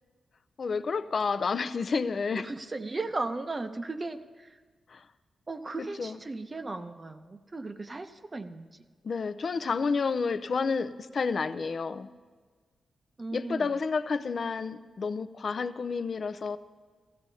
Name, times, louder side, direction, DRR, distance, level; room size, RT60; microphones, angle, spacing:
voice 1, 0.6-2.5 4.9-5.0 6.0-6.2 9.0-12.1 13.3-16.6, left 5 dB, 55° left, 13 dB, 0.4 m, -30 dB
voice 2, 2.4-4.6 5.5-8.9 13.2-13.7, right 3 dB, 30° right, 8 dB, 0.7 m, -36 dB
16.5 x 15.0 x 2.8 m, 1.5 s
cardioid pair, 90°, 0 cm